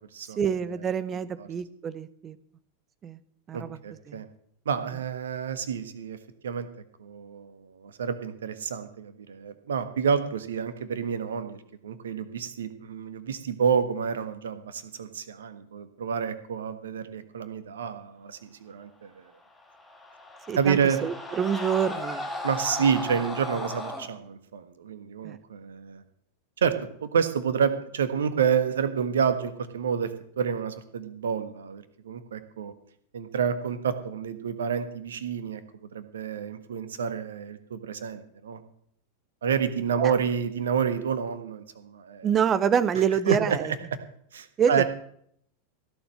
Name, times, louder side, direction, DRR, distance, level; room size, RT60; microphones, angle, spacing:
voice 1, 0.2-2.4 3.0-3.2 3.5-3.8 4.1-4.2 20.5-22.3 25.2-25.4 40.0-40.2 42.2-43.7 44.6-44.8, right 8 dB, 25° right, 17 dB, 0.9 m, -26 dB
voice 2, 3.5-4.3 4.6-6.2 6.4-6.7 7.0-11.6 11.8-19.2 20.6-21.0 22.4-26.0 26.6-26.7 27.0-32.7 33.1-35.6 35.9-38.6 39.4-42.3 43.3-43.6 44.3-44.8, right 7 dB, 65° right, 11 dB, 1.4 m, -29 dB
sound 1, 19.6-24.1, left 2 dB, 10° left, 2.9 m, -36 dB
16.0 x 7.0 x 7.6 m, 0.67 s
figure-of-eight pair, 90°, 0 cm